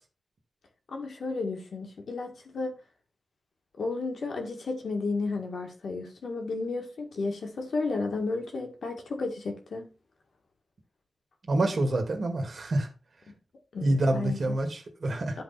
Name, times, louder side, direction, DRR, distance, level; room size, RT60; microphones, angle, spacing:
voice 1, 0.9-2.7 3.8-9.9 13.7-14.6 15.3-15.4, left 3 dB, 75° left, 2.1 m, -33 dB
voice 2, 11.5-12.9 13.8-15.4, right 1 dB, 55° right, 2.0 m, -27 dB
12.0 x 4.0 x 4.2 m
wide cardioid pair, 105°, 0 cm